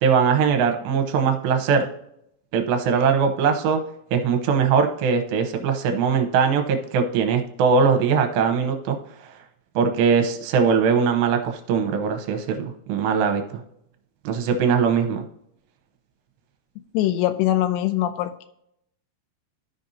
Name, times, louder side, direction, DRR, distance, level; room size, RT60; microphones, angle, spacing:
voice 1, 0.0-1.9 2.5-3.8 4.1-9.3 9.8-13.6 14.2-15.2, right 6 dB, 80° right, 4 dB, 2.8 m, -21 dB
voice 2, 16.8-18.5, left 13 dB, 85° left, 10 dB, 2.6 m, -23 dB
13.5 x 5.2 x 2.7 m, 0.76 s
omnidirectional pair, 5.2 m